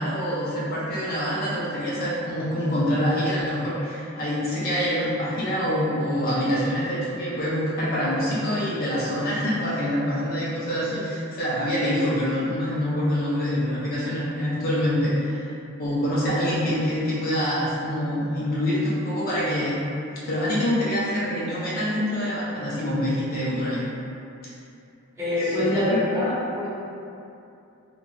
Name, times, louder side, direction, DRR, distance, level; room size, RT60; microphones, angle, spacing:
voice 1, 0.0-15.5 15.8-19.8 20.2-23.8 25.6-25.7, equal, 40° left, -8 dB, 0.5 m, -25 dB
voice 2, 25.2-26.7, left 1 dB, 15° right, -11 dB, 0.7 m, -24 dB
2.9 x 2.2 x 2.5 m, 2.6 s
head